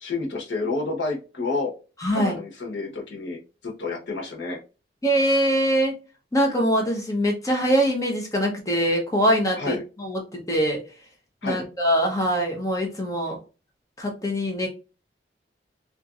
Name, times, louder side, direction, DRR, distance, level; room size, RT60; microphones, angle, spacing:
voice 1, 0.0-1.7 2.1-3.4 3.6-4.6 9.6-9.8 11.4-11.7, left 3 dB, 90° left, 0 dB, 1.0 m, -29 dB
voice 2, 2.0-2.4 5.0-5.9 6.3-10.8 11.4-13.4 14.0-14.7, equal, 20° left, 1 dB, 0.7 m, -23 dB
2.9 x 2.5 x 2.3 m, 0.32 s
head